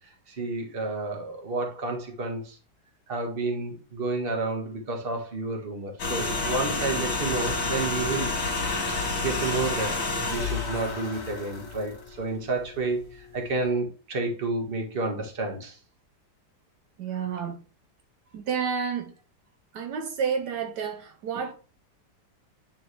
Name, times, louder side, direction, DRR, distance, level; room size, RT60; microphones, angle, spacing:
voice 1, 0.3-2.6 3.1-8.3 9.2-10.0 10.3-15.8, right 3 dB, 35° right, 1.5 m, -30 dB
sound 1, 6.0-12.3 12.6-12.8, left 3 dB, 70° left, 2.2 m, -29 dB
voice 2, 17.0-17.6 18.3-19.1 19.7-21.5, right 6 dB, 75° right, 1.3 m, -30 dB
9.4 x 3.8 x 3.2 m
omnidirectional pair, 1.9 m